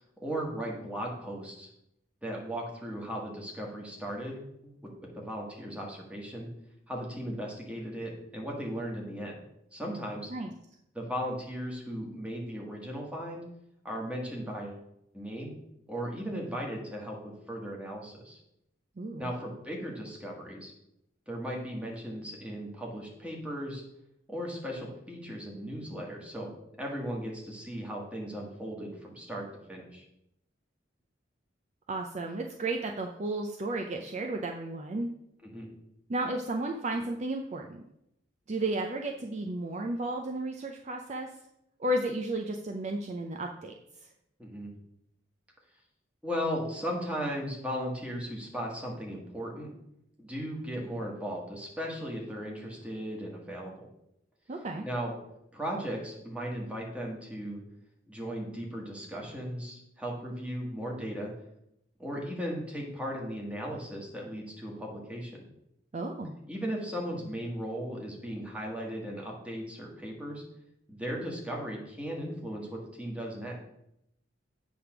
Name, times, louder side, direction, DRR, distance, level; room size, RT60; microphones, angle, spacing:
voice 1, 0.2-1.7 2.2-6.5 6.9-9.4 9.7-10.3 10.9-13.4 13.8-14.8 15.1-15.5 15.9-17.2 17.5-18.4 19.2-20.7 21.3-23.8 24.3-26.5 26.8-30.0 35.5-35.7 44.4-44.7 46.2-49.7 50.2-53.9 54.8-55.1 55.5-57.6 58.1-61.3 62.0-65.4 66.5-70.4 70.9-73.5, equal, 5° right, -2 dB, 1.5 m, -37 dB
voice 2, 19.0-19.3 31.9-35.1 36.1-37.8 38.5-41.3 41.8-43.7 54.5-54.9 65.9-66.3, right 2 dB, 40° right, 3 dB, 0.5 m, -33 dB
8.3 x 3.4 x 5.9 m, 0.80 s
head